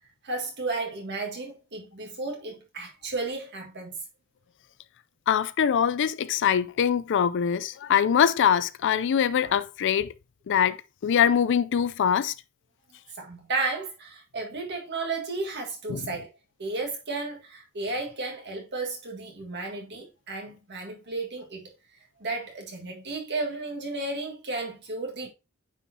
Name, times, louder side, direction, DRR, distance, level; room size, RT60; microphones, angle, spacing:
voice 1, 0.2-4.0 13.2-16.3 16.6-21.7 22.2-25.3, right 3 dB, 50° right, 1.7 m, -33 dB
voice 2, 5.3-10.1 10.5-12.3 15.9-16.1, left 8 dB, 55° left, 0.4 m, -23 dB
9.0 x 4.3 x 2.8 m
head